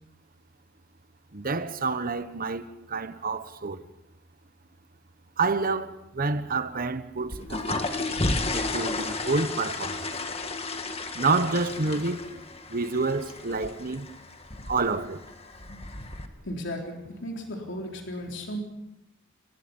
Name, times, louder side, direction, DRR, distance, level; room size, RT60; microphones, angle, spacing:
voice 1, 1.3-3.8 5.4-7.9 8.5-10.1 11.1-12.2 12.7-14.1 14.7-15.2, right 3 dB, 45° right, 1.2 m, -28 dB
sound 1, 7.2-16.3, left 2 dB, 30° left, 1.8 m, -33 dB
voice 2, 16.4-18.6, equal, 60° left, 3.7 m, -35 dB
28.0 x 20.0 x 5.5 m
head